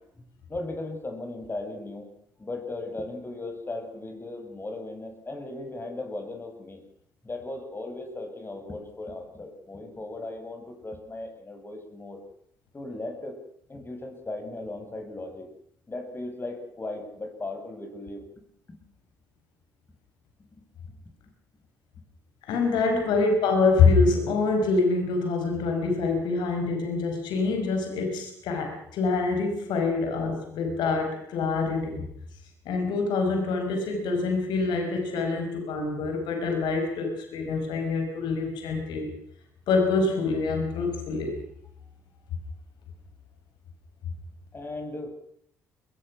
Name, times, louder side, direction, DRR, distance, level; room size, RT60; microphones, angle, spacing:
voice 1, 0.1-2.1 2.4-6.8 7.2-12.2 12.7-13.4 13.7-15.5 15.9-18.8 20.4-20.5 22.9-23.1 44.5-45.1, left 2 dB, 25° left, 3 dB, 7.8 m, -37 dB
voice 2, 22.5-32.0 32.7-39.1 39.7-41.4, left 4 dB, 65° left, 4 dB, 5.3 m, -25 dB
24.0 x 21.5 x 6.1 m, 0.67 s
figure-of-eight pair, 45°, 8 cm